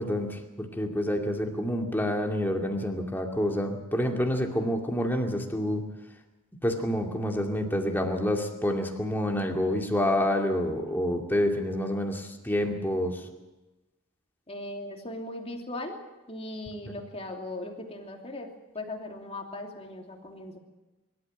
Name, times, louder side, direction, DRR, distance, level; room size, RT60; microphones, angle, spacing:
voice 1, 0.0-5.8 6.6-13.2, left 1 dB, 10° left, 2 dB, 2.4 m, -28 dB
voice 2, 14.5-16.0 16.3-18.5 18.7-20.6, left 1 dB, 30° left, 2 dB, 2.9 m, -38 dB
24.5 x 13.0 x 9.0 m, 1.1 s
head